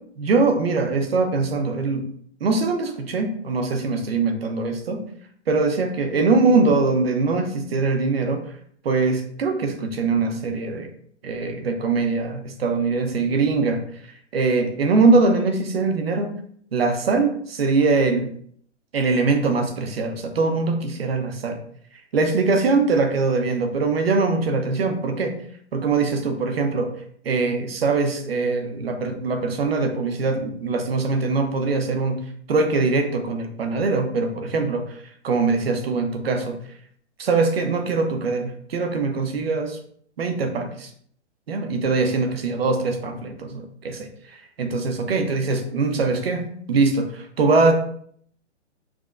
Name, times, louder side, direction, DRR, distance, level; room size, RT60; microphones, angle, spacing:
voice 1, 0.2-2.1 2.4-5.1 5.5-8.5 8.8-10.9 11.2-13.9 14.3-16.3 16.7-18.3 18.9-21.6 22.1-25.4 25.7-26.9 27.2-34.8 35.2-36.6 37.2-39.8 40.2-40.9 41.5-47.7, right 3 dB, 55° right, 6 dB, 0.7 m, -22 dB
6.0 x 2.1 x 2.4 m, 0.62 s
hypercardioid pair, 175°, 36 cm